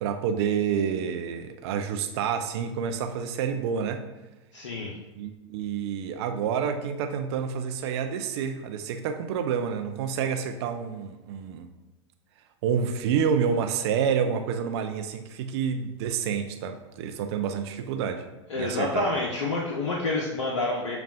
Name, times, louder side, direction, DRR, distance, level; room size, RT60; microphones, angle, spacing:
voice 1, 0.0-4.0 5.2-11.7 12.6-18.3 18.6-19.1, right 7 dB, 55° right, 6 dB, 0.5 m, -28 dB
voice 2, 4.5-4.9 18.5-21.0, left 2 dB, 75° left, -1 dB, 0.6 m, -28 dB
6.8 x 2.3 x 2.3 m, 1.1 s
figure-of-eight pair, 90°, 16 cm